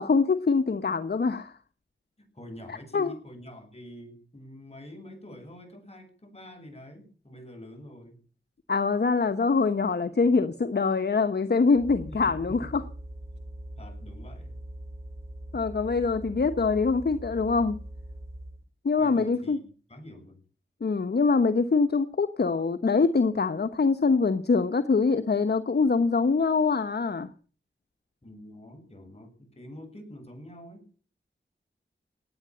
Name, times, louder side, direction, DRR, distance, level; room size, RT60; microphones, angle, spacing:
voice 1, 0.0-1.5 2.7-3.1 8.7-12.8 15.5-17.8 18.8-19.6 20.8-27.3, left 4 dB, 60° left, 9 dB, 1.1 m, -24 dB
voice 2, 2.3-8.2 12.1-12.8 13.3-13.4 13.8-14.5 19.0-19.6 19.9-20.4 28.2-30.9, left 1 dB, 35° left, 4 dB, 7.7 m, -46 dB
sound 1, 11.7-18.6, right 1 dB, 15° right, 2.8 m, -42 dB
18.5 x 8.7 x 8.8 m, 0.42 s
wide cardioid pair, 70°, 19 cm